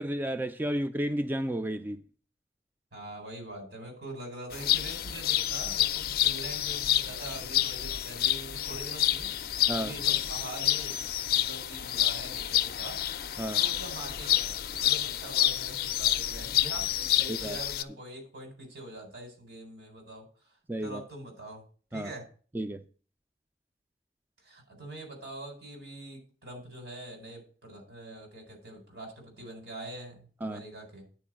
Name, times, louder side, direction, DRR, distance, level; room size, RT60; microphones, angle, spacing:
voice 1, 0.0-2.0 9.7-9.9 13.4-13.6 17.3-17.6 20.7-21.0 21.9-22.1 22.5-22.8 30.4-30.6, right 1 dB, 10° right, 0.3 m, -32 dB
voice 2, 2.9-11.0 11.3-13.0 13.6-20.3 20.8-21.6 21.9-22.3 24.4-31.1, right 1 dB, 80° right, 4.1 m, -44 dB
sound 1, 4.5-17.8, left 12 dB, 55° left, 0.5 m, -29 dB
9.4 x 4.5 x 7.4 m
head